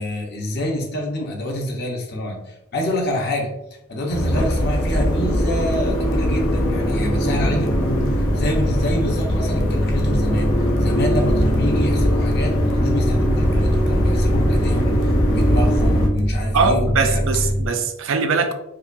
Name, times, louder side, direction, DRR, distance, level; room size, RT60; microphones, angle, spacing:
voice 1, 0.0-3.5 3.9-17.2, left 1 dB, 50° left, 0 dB, 0.8 m, -27 dB
sound 1, 4.1-16.1, equal, 85° left, 0.7 m, -21 dB
sound 2, 4.2-17.7, equal, 20° right, 0.6 m, -25 dB
sound 3, 4.6-17.0, left 1 dB, 35° left, 0.4 m, -30 dB
voice 2, 16.5-18.5, right 4 dB, 65° right, 6 dB, 0.4 m, -21 dB
4.7 x 2.3 x 2.5 m, 0.84 s
head